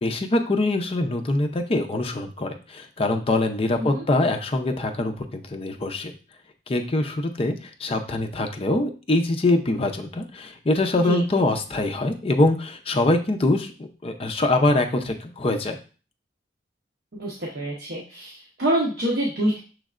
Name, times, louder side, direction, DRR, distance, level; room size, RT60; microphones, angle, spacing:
voice 1, 0.0-6.1 6.7-7.5 7.8-15.8, left 2 dB, 35° left, 5 dB, 0.5 m, -23 dB
voice 2, 17.1-19.6, right 1 dB, 60° right, -3 dB, 0.9 m, -26 dB
6.2 x 3.2 x 2.4 m, 0.37 s
head